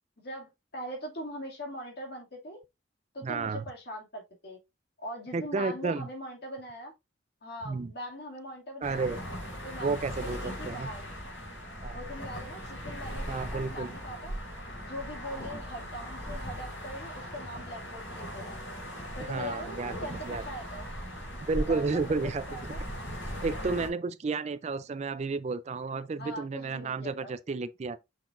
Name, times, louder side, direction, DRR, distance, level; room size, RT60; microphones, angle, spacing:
voice 1, 0.2-2.6 3.1-4.6 5.0-6.9 7.4-9.1 9.6-11.0 11.9-14.3 14.8-18.6 19.2-20.8 21.7-22.0 22.5-22.8 26.2-27.3, equal, 60° left, 2.3 m, -41 dB
voice 2, 3.2-3.6 5.3-6.1 7.6-7.9 8.8-9.2 9.8-10.4 10.7-10.9 11.8-12.0 13.3-13.9 19.3-20.4 21.5-22.4 23.4-28.0, right 4 dB, 35° right, 0.4 m, -32 dB
sound 1, 8.8-23.9, equal, 85° left, 4.4 m, -39 dB
6.5 x 5.8 x 2.5 m
head